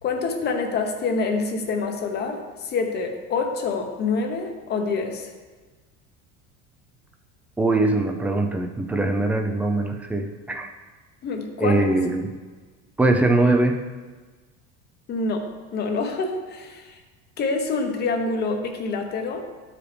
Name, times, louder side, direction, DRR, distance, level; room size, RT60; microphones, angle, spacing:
voice 1, 0.0-5.3 11.2-11.8 15.1-17.0 17.4-19.4, left 4 dB, 35° left, 4 dB, 0.9 m, -26 dB
voice 2, 7.6-10.7 11.6-12.3 13.0-13.8, right 2 dB, 5° right, 4 dB, 0.4 m, -22 dB
12.0 x 5.0 x 3.3 m, 1.4 s
cardioid pair, 150°, 29 cm